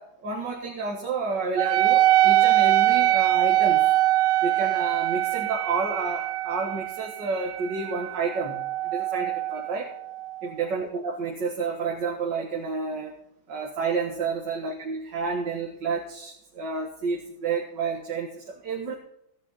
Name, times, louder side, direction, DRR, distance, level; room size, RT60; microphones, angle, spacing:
voice 1, 0.0-3.9 4.4-9.9 10.4-13.1 13.5-18.9, right 4 dB, 55° right, 0 dB, 2.3 m, -30 dB
Wind instrument woodwind instrument, 1.6-10.5, right 15 dB, 80° right, 1.5 m, -23 dB
17.0 x 10.5 x 4.2 m, 0.78 s
omnidirectional pair, 2.4 m